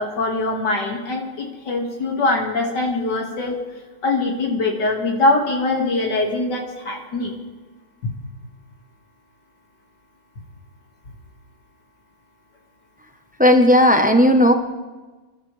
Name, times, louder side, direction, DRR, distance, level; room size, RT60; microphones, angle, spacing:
voice 1, 0.0-3.6 4.0-7.3 8.0-8.1, left 2 dB, 70° left, 0 dB, 2.6 m, -22 dB
voice 2, 13.4-14.5, equal, 10° right, 5 dB, 0.5 m, -14 dB
26.0 x 12.5 x 3.3 m, 1.3 s
omnidirectional pair, 1.9 m